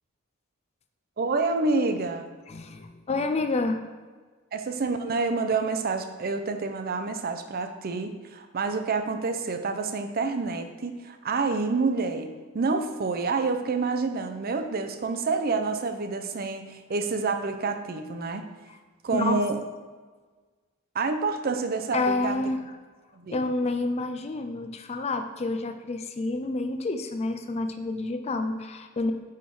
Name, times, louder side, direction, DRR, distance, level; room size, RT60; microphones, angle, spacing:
voice 1, 1.2-2.3 4.5-18.5 19.0-19.6 20.9-22.4 23.1-23.4, right 4 dB, 45° right, 7 dB, 0.6 m, -28 dB
voice 2, 2.5-3.8 18.7-18.8 19.1-19.4 21.9-22.6 23.3-29.1, left 3 dB, 30° left, 7 dB, 0.4 m, -29 dB
9.2 x 3.6 x 4.6 m, 1.4 s
head